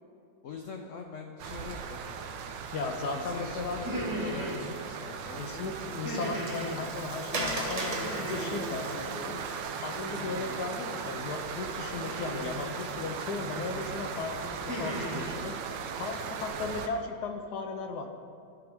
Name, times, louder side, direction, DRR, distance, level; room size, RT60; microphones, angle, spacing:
voice 1, 0.4-2.0 3.1-5.7 8.3-9.5 16.6-16.7, left 5 dB, 85° left, 3 dB, 0.6 m, -43 dB
sound 1, 1.4-16.9, right 6 dB, 80° right, 1.3 m, -38 dB
voice 2, 2.7-3.8 5.4-9.3 9.8-15.5 16.0-18.1, left 4 dB, 70° left, 5 dB, 1.1 m, -36 dB
sound 2, 3.9-4.6 6.0-6.7 8.0-8.7 10.0-10.6 12.0-12.7 13.5-13.9 14.4-15.2, equal, 10° right, 1.4 m, -36 dB
Water, 5.1-10.5, right 1 dB, 45° right, 0.5 m, -39 dB
12.0 x 4.5 x 3.5 m, 2.6 s
omnidirectional pair, 1.9 m